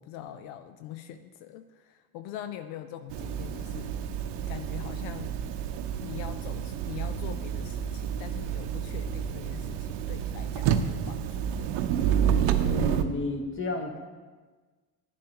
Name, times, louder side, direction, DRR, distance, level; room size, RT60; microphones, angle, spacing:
voice 1, 0.0-5.4 6.0-11.8, left 10 dB, 80° left, 10 dB, 0.5 m, -43 dB
sound 1, 3.1-13.0, right 8 dB, 65° right, 0.7 m, -29 dB
voice 2, 12.6-14.0, left 2 dB, 25° left, 4 dB, 1.2 m, -32 dB
10.0 x 7.1 x 2.9 m, 1.4 s
supercardioid pair, 70°, 45 cm